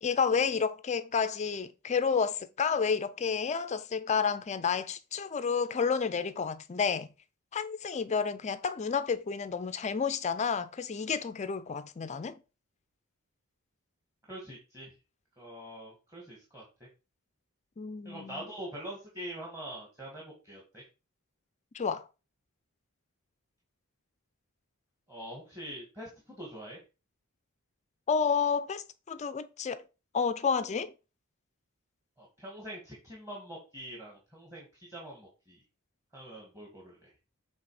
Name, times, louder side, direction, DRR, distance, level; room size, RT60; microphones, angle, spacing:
voice 1, 0.0-7.1 7.5-12.4 17.8-18.4 21.7-22.1 28.1-29.8 30.1-30.9, left 6 dB, 30° left, 0.4 m, -30 dB
voice 2, 14.3-14.9 15.4-16.9 18.0-20.8 25.1-26.8 32.2-35.6 36.1-37.1, right 1 dB, 15° right, 2.0 m, -44 dB
7.7 x 3.5 x 4.8 m
head